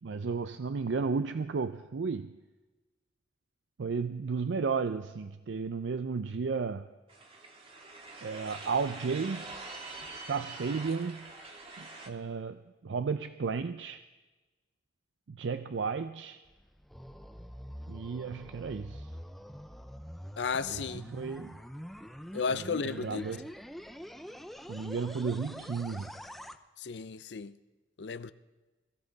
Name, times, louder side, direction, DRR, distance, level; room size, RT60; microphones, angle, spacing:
voice 1, 0.0-2.4 3.8-6.9 8.2-9.6 10.3-11.3 11.8-14.1 15.3-16.4 17.9-19.1 20.6-21.6 22.5-23.5 24.7-26.2, right 5 dB, 85° right, 0.5 m, -34 dB
sound 1, 7.1-12.1, right 3 dB, 30° right, 1.7 m, -45 dB
sound 2, 16.5-26.6, equal, ahead, 0.6 m, -45 dB
voice 2, 20.4-21.0 22.3-23.2 26.8-27.5 28.0-28.3, left 5 dB, 70° left, 0.5 m, -33 dB
22.5 x 15.0 x 4.0 m
head